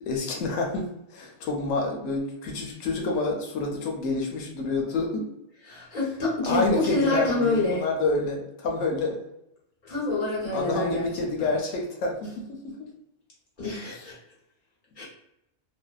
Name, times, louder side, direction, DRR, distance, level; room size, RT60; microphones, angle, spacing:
voice 1, 0.0-5.3 6.5-9.2 10.5-12.9, left 3 dB, 90° left, 0 dB, 0.9 m, -28 dB
voice 2, 5.6-7.8 9.8-11.1 11.4-11.5 13.6-14.2 15.0-15.1, left 2 dB, 40° left, -6 dB, 1.1 m, -27 dB
2.6 x 2.1 x 2.2 m, 0.84 s
omnidirectional pair, 1.3 m